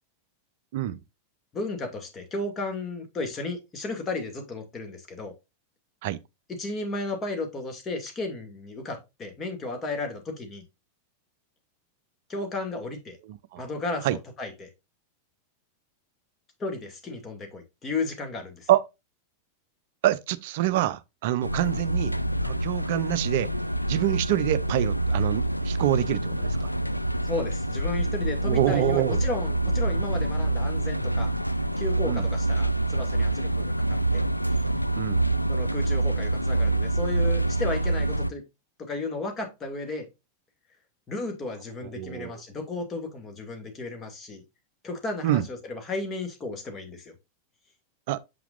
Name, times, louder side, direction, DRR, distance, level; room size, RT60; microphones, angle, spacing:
voice 1, 1.5-5.3 6.5-10.6 12.3-13.2 13.6-14.7 16.6-18.7 27.2-31.3 31.8-34.2 35.5-38.4 38.8-40.1 41.1-44.4 44.8-47.1, left 3 dB, 25° left, 2.2 m, -34 dB
voice 2, 13.3-13.6 14.0-14.2 18.7-18.8 20.0-22.1 22.4-23.5 23.9-26.7 28.4-29.2 32.1-32.3 35.0-35.2 42.0-42.4 45.2-45.5 48.1-48.2, right 14 dB, 50° right, 0.5 m, -26 dB
sound 1, 21.4-38.3, right 2 dB, 90° left, 0.3 m, -26 dB
7.4 x 5.8 x 2.5 m
figure-of-eight pair, 90°, 0 cm